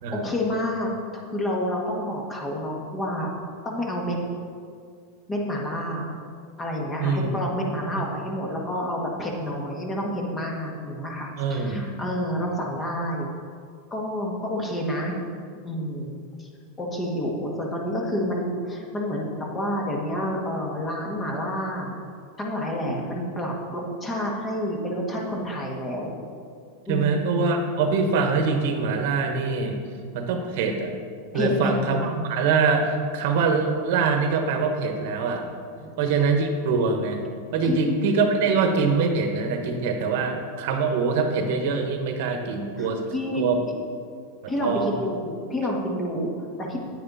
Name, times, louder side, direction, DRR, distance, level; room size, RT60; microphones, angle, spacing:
voice 1, 0.1-3.3 3.6-4.2 5.3-6.2 6.6-13.3 13.9-15.2 15.6-16.5 16.8-19.3 19.5-22.0 22.4-26.1 26.9-27.1 31.3-31.9 35.8-35.9 37.6-37.8 42.8-43.5 44.5-46.8, equal, 20° left, -1 dB, 1.7 m, -29 dB
voice 2, 7.0-7.3 11.4-11.8 26.9-29.8 30.1-30.9 31.3-35.5 36.0-37.2 37.5-43.0 43.4-43.6 44.4-44.9, right 4 dB, 65° right, 4 dB, 1.2 m, -24 dB
9.3 x 9.2 x 4.1 m, 2.2 s
supercardioid pair, 135°, 0 cm